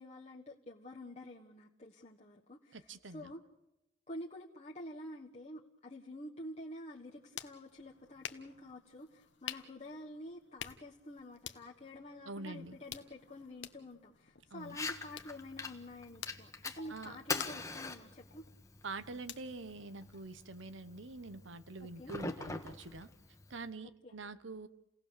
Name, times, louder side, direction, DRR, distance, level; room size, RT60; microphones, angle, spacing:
voice 1, 0.0-3.4 4.1-18.5 21.8-22.1 24.0-24.2, left 1 dB, 35° left, -2 dB, 1.4 m, -49 dB
voice 2, 2.7-3.3 12.3-12.8 14.5-14.8 16.9-17.2 18.8-23.1 23.5-24.7, right 3 dB, 90° right, 13 dB, 1.1 m, -45 dB
sound 1, 6.9-20.6, left 9 dB, 70° left, 1.1 m, -51 dB
Fire, 14.6-23.6, left 3 dB, 15° left, 1.4 m, -44 dB
29.5 x 18.0 x 6.9 m, 0.90 s
head